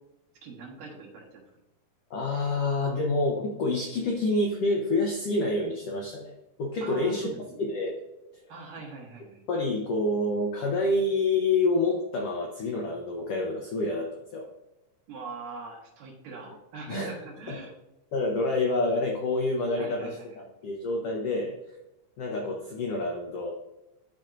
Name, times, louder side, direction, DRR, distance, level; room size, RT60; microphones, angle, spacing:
voice 1, 0.4-1.4 6.8-7.6 8.5-9.4 15.1-17.7 19.8-20.4, right 4 dB, 75° right, -2 dB, 3.0 m, -42 dB
voice 2, 2.1-6.3 6.6-7.3 7.6-8.0 9.5-14.5 16.9-17.1 17.5-17.6 18.1-21.5 22.2-23.5, left 2 dB, 85° left, 0 dB, 1.3 m, -27 dB
11.5 x 4.4 x 2.5 m, 0.96 s
omnidirectional pair, 3.9 m